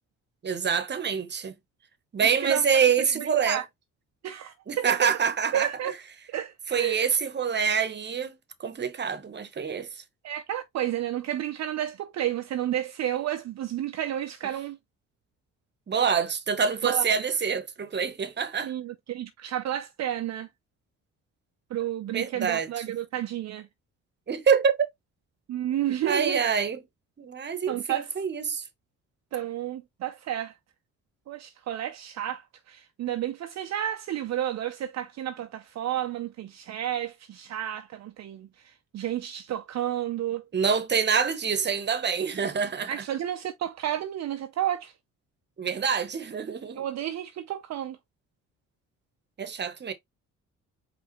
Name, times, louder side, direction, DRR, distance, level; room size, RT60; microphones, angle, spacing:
voice 1, 0.4-1.5 2.1-3.6 4.7-5.7 6.7-9.9 15.9-18.7 22.1-22.7 24.3-24.8 26.1-26.8 27.2-28.6 40.5-42.9 45.6-46.8 49.4-49.9, right 6 dB, 35° right, 1.0 m, -26 dB
voice 2, 2.4-3.7 4.2-5.1 5.5-6.0 6.3-7.1 10.2-14.8 16.8-17.2 18.6-20.5 21.7-23.7 25.5-26.4 27.7-28.1 29.3-30.6 31.3-40.4 42.9-44.9 46.8-48.0, right 11 dB, 60° right, 0.6 m, -31 dB
4.9 x 3.3 x 3.0 m
cardioid pair, 90°, 30 cm